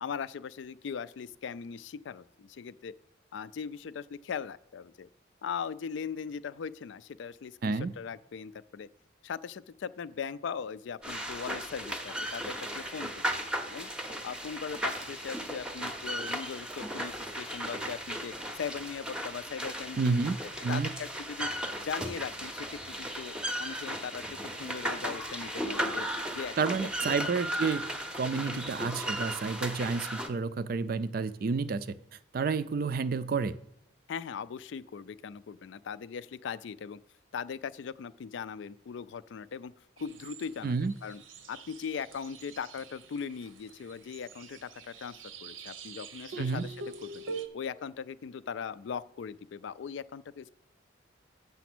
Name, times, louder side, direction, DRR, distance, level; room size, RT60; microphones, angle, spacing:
voice 1, 0.0-2.9 3.3-5.1 5.4-8.9 9.2-13.3 13.6-13.9 14.2-20.3 20.7-21.5 21.8-26.1 26.3-26.8 28.3-28.6 34.1-37.0 37.3-39.7 40.0-41.2 41.5-45.1 45.4-47.2 47.5-50.5, left 6 dB, 70° left, 16 dB, 0.3 m, -39 dB
voice 2, 7.6-7.9 20.0-20.9 26.6-27.8 28.1-31.9 32.3-33.5 40.6-40.9 46.4-46.6, right 4 dB, 45° right, 15 dB, 0.4 m, -30 dB
sound 1, 11.0-30.3, equal, 5° right, 0.6 m, -36 dB
sound 2, 40.0-47.5, right 4 dB, 85° right, 0.8 m, -45 dB
7.1 x 6.8 x 6.0 m, 0.74 s
head